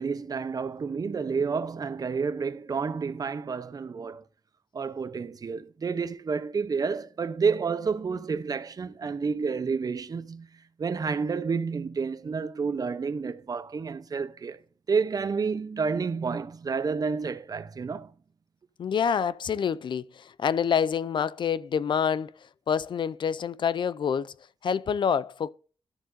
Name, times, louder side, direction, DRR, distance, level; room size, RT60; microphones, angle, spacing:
voice 1, 0.0-4.2 4.7-10.5 10.8-14.6 14.9-18.1, right 5 dB, 45° right, 0.8 m, -30 dB
voice 2, 18.8-22.3 22.7-24.3 24.6-25.5, left 7 dB, 65° left, 0.5 m, -27 dB
13.0 x 7.5 x 2.7 m
wide cardioid pair, 110°, 9 cm